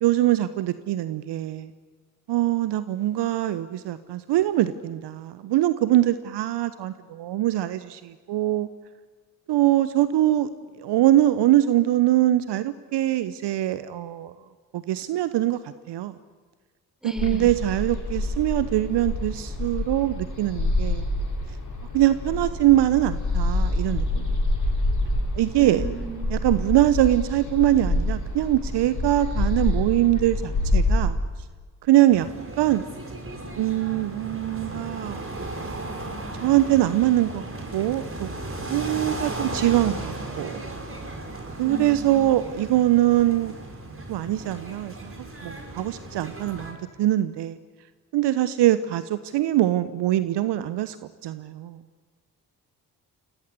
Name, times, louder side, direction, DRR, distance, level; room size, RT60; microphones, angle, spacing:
voice 1, 0.0-1.7 2.3-8.7 9.5-10.5 10.8-14.3 14.7-16.1 17.0-21.1 21.9-24.4 25.3-25.9 26.3-31.2 31.8-32.3 32.6-32.9 33.6-35.2 36.4-38.3 38.7-40.6 41.6-43.6 44.1-45.1 45.4-47.6 48.1-51.0 51.2-51.8, right 14 dB, 55° right, 14 dB, 1.1 m, -23 dB
voice 2, 17.0-17.5 25.6-26.5 41.6-42.4, equal, ahead, 8 dB, 4.1 m, -36 dB
sound 1, 17.2-31.1, left 2 dB, 35° left, 7.8 m, -27 dB
sound 2, 32.1-46.7, right 2 dB, 25° right, 6.0 m, -35 dB
28.5 x 18.0 x 9.8 m, 1.5 s
figure-of-eight pair, 40°, 48 cm